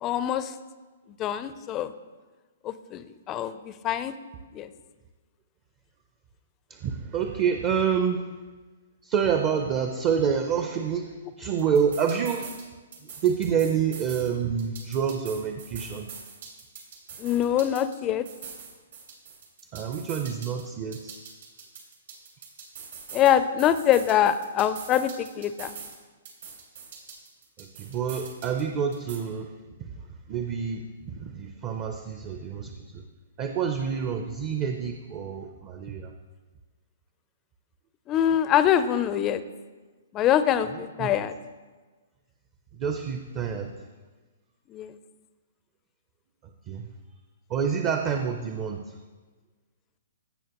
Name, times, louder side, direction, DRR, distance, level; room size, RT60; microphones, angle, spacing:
voice 1, 0.0-0.5 1.2-1.9 2.6-4.2 4.5-4.7 17.2-18.2 23.1-25.8 38.1-39.4 40.1-41.3 44.7-45.0, left 10 dB, 25° left, 13 dB, 0.4 m, -24 dB
voice 2, 6.7-8.2 9.0-12.5 13.2-16.1 19.7-21.2 27.6-29.5 29.8-29.9 30.3-33.0 33.4-36.1 40.7-41.2 42.7-43.7 46.7-46.9 47.5-48.9, right 7 dB, 30° right, 5 dB, 0.5 m, -28 dB
sound 1, 11.6-12.6 12.9-14.3 14.6-18.0 18.3-20.6 20.9-23.3 23.6-26.0 26.3-28.6 28.9-29.2, right 6 dB, 70° right, 2.5 m, -43 dB
15.0 x 6.2 x 2.9 m, 1.3 s
hypercardioid pair, 150°, 0 cm